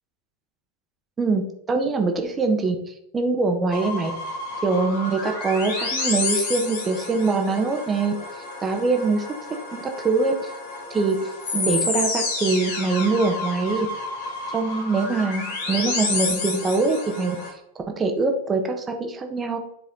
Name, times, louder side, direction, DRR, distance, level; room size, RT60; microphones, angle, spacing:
voice 1, 1.7-2.8 3.1-4.1 4.6-8.1 8.6-9.2 9.7-10.3 10.9-11.2 11.5-13.9 14.5-17.4 18.0-19.6, right 3 dB, 20° right, 4 dB, 1.3 m, -23 dB
sound 1, 3.7-17.5, left 3 dB, 50° left, 2.3 m, -30 dB
9.8 x 4.9 x 3.9 m, 0.76 s
figure-of-eight pair, 90°, 0 cm